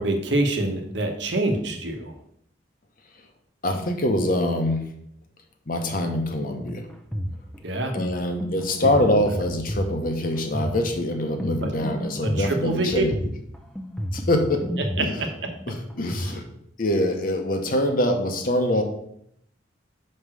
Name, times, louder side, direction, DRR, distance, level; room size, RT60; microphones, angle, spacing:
voice 1, 0.0-2.2 7.6-7.9 8.8-9.0 11.6-11.7 12.2-13.0 15.2-15.3 16.2-16.3, right 2 dB, 70° right, 4 dB, 1.2 m, -26 dB
voice 2, 3.6-4.9 5.7-6.9 7.9-13.1 14.1-14.7 15.0-15.1 15.7-16.4 16.8-18.8, left 1 dB, 50° left, 5 dB, 1.1 m, -24 dB
sound 1, 6.6-16.4, equal, 5° left, 0.6 m, -32 dB
5.5 x 4.7 x 6.3 m, 0.72 s
head